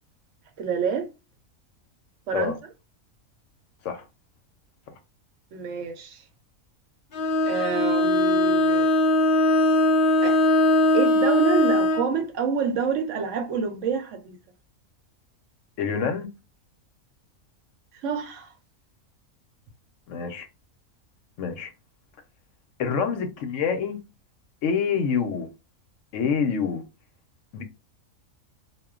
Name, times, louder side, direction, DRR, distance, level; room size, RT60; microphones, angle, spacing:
voice 1, 0.6-1.1 2.3-2.5 5.5-6.2 7.5-8.9 10.2-10.4 10.9-14.4 18.0-18.5, right 6 dB, 70° right, 0.9 m, -27 dB
Bowed string instrument, 7.1-12.1, left 1 dB, 85° left, 0.4 m, -20 dB
voice 2, 15.8-16.3 20.1-20.5 21.4-21.7 22.8-24.0 24.6-25.5 26.1-26.8 27.5-27.6, left 6 dB, 70° left, 0.9 m, -26 dB
2.3 x 2.1 x 3.6 m
omnidirectional pair, 1.5 m